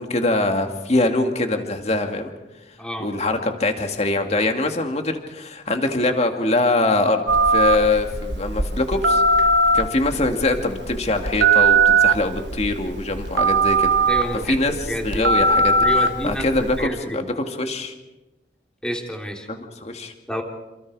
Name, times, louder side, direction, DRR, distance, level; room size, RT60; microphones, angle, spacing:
voice 1, 0.0-2.3 3.0-9.2 9.7-14.0 14.5-14.7 15.0-15.9 16.2-17.9 19.5-20.1, left 2 dB, 40° left, 4 dB, 2.3 m, -23 dB
voice 2, 2.8-3.1 14.1-15.3 15.8-17.2 18.8-19.5 20.3-20.4, equal, 5° left, 1 dB, 3.3 m, -29 dB
Telephone, 7.3-16.8, right 3 dB, 80° right, 1.2 m, -20 dB
28.0 x 27.5 x 4.9 m, 1.1 s
head